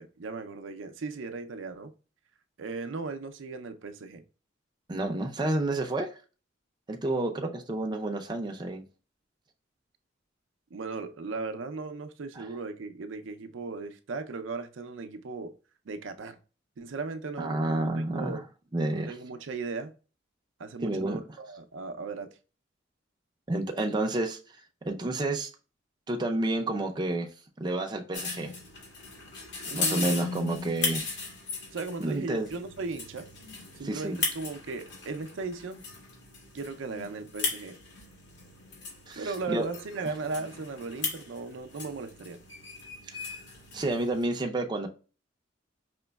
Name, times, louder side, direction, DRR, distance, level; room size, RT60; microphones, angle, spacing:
voice 1, 0.0-1.9 2.6-4.2 7.0-7.4 10.7-15.5 15.9-16.4 16.8-18.4 19.0-19.9 20.6-22.3 29.7-30.1 31.7-33.3 33.8-35.8 36.5-37.8 39.2-42.4, right 4 dB, 80° right, 0.5 m, -37 dB
voice 2, 4.9-6.1 6.9-8.8 12.3-12.5 17.4-18.4 18.7-19.1 20.8-21.4 23.5-24.4 24.9-25.5 26.1-27.3 27.6-28.5 29.7-31.1 32.0-32.5 33.8-34.2 39.1-39.7 43.1-43.4 43.7-44.9, right 2 dB, 25° right, 0.5 m, -30 dB
sound 1, 28.1-44.2, left 4 dB, 65° left, 1.6 m, -37 dB
5.0 x 3.0 x 2.2 m
head